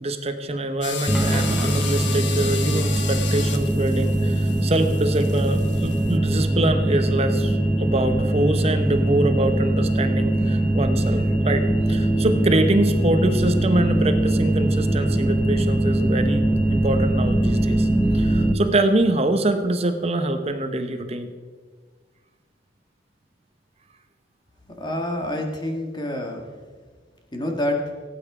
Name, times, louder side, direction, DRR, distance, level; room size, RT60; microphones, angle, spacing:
voice 1, 0.0-16.4 16.7-17.9 18.1-21.3, right 1 dB, 35° right, 8 dB, 0.9 m, -24 dB
sound 1, 0.8-6.2, left 7 dB, 70° left, 1.2 m, -34 dB
sound 2, 1.1-18.5, right 1 dB, 5° right, 0.7 m, -21 dB
voice 2, 24.8-26.4 27.3-27.8, left 1 dB, 25° left, 3 dB, 1.7 m, -27 dB
17.0 x 8.9 x 4.9 m, 1.5 s
head